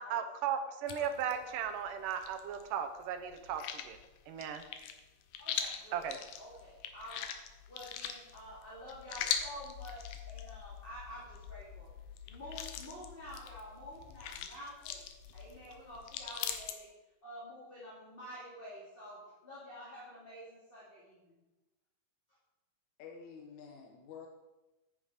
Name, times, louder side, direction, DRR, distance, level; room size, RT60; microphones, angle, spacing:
voice 1, 0.0-4.0 4.3-4.6 5.9-6.2, right 8 dB, 75° right, 8 dB, 2.3 m, -36 dB
sound 1, 0.9-2.7 3.0-16.7, left 8 dB, 85° left, 2.6 m, -42 dB
voice 2, 0.9-1.6 5.4-6.1 6.4-7.3 7.7-11.9 12.3-15.0 15.3-16.9 17.2-21.4, equal, 15° left, -8 dB, 2.6 m, -49 dB
voice 3, 23.0-24.3, left 6 dB, 65° left, 2 dB, 2.1 m, -49 dB
10.0 x 9.4 x 5.1 m, 1.1 s
omnidirectional pair, 4.1 m